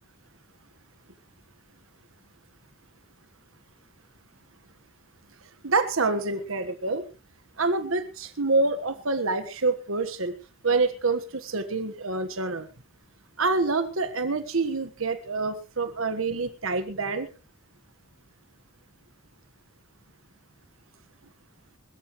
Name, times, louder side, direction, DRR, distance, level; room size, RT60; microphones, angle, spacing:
voice 1, 5.6-7.0 7.6-10.3 10.6-12.7 13.4-17.3, right 3 dB, 75° right, 10 dB, 1.5 m, -26 dB
22.0 x 13.5 x 3.2 m, 0.31 s
head